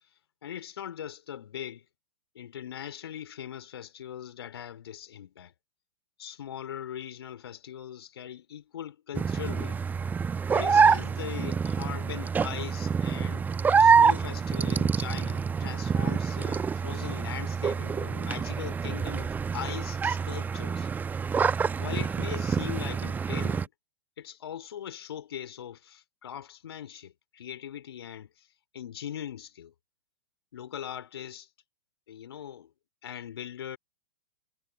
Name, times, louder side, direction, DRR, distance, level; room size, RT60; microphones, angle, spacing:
voice 1, 0.4-1.8 2.3-5.5 6.2-9.8 10.5-13.5 13.7-20.9 21.8-23.7 24.2-28.3 28.7-29.7 30.5-31.5 32.1-32.7 33.0-33.8, left 10 dB, 60° left, 2.9 m, -40 dB
sound 1, 9.2-23.7, right 6 dB, 10° right, 0.9 m, -26 dB
figure-of-eight pair, 105°, 15 cm